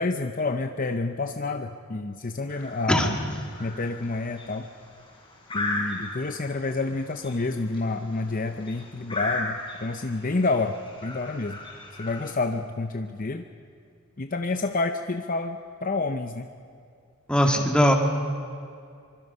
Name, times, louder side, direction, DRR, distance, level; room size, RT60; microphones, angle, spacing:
voice 1, 0.0-3.2 3.6-4.7 5.5-10.8 11.0-11.6 12.0-13.4 14.2-16.5 17.5-17.7, left 3 dB, 40° left, 6 dB, 0.7 m, -29 dB
sound 1, 2.5-12.3, left 2 dB, 20° left, 4.5 m, -37 dB
voice 2, 17.3-18.0, equal, 5° left, 2 dB, 2.0 m, -20 dB
26.0 x 24.5 x 5.5 m, 2.3 s
head